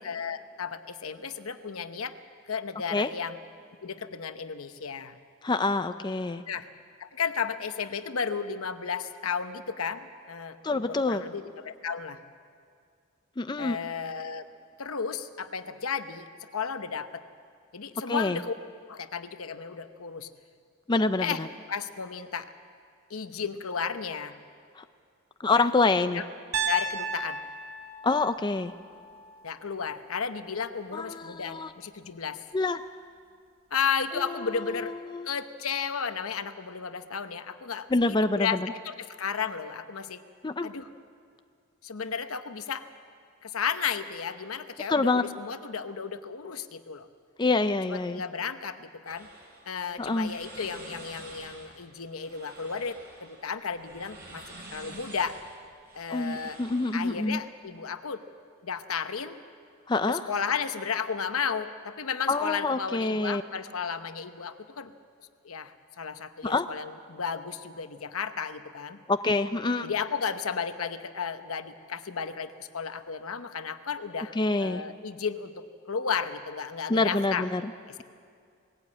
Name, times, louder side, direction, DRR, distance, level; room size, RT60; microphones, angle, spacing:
voice 1, 0.0-2.1 2.5-3.4 3.8-5.2 6.5-6.7 7.0-12.2 13.6-14.5 14.8-16.3 16.5-17.2 17.7-18.5 18.9-20.3 21.2-21.4 21.7-22.5 23.1-24.4 25.5-25.7 26.1-26.2 26.7-27.4 29.4-32.4 33.7-34.9 35.2-37.9 38.4-40.2 40.6-40.9 41.8-42.8 43.4-47.1 47.9-49.3 49.7-55.4 56.0-56.6 56.9-58.2 58.6-59.4 60.1-64.9 65.4-69.0 69.8-77.5, left 6 dB, 80° left, 10 dB, 1.0 m, -33 dB
voice 2, 5.4-6.4 10.6-11.2 13.4-13.8 18.1-18.4 20.9-21.5 24.8-24.9 25.4-26.2 28.0-28.7 30.9-31.7 32.5-32.8 34.3-35.3 37.9-38.7 40.4-40.7 44.9-45.2 47.4-48.2 50.0-50.3 56.1-57.4 59.9-60.3 62.3-63.4 66.4-66.6 69.1-69.9 74.4-74.8 76.9-77.7, left 3 dB, 20° left, 10 dB, 0.4 m, -26 dB
Piano, 26.5-30.6, right 4 dB, 70° right, 1.2 m, -35 dB
sound 1, 49.0-57.4, right 2 dB, 50° right, 4.9 m, -48 dB
19.5 x 17.0 x 8.6 m, 2.2 s
head